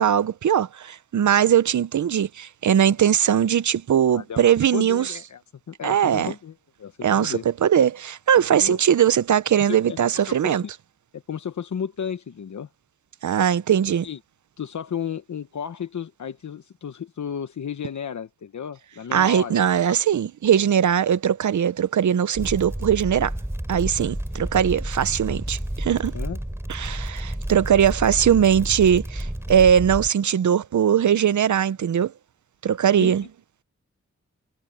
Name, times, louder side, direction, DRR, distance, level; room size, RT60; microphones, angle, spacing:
voice 1, 0.0-5.1 5.8-6.3 7.0-10.6 13.2-14.0 19.1-23.3 23.7-26.1 26.7-32.1 32.6-33.2, right 9 dB, 80° right, 0.7 m, -20 dB
voice 2, 4.1-5.4 5.7-7.5 8.5-8.8 9.6-10.6 11.1-12.7 14.0-14.2 14.6-19.6 19.9-20.0 26.1-26.4 33.0-33.1, left 7 dB, 80° left, 1.0 m, -33 dB
sound 1, 22.4-30.1, right 1 dB, 10° right, 3.7 m, -31 dB
cardioid pair, 50°, 29 cm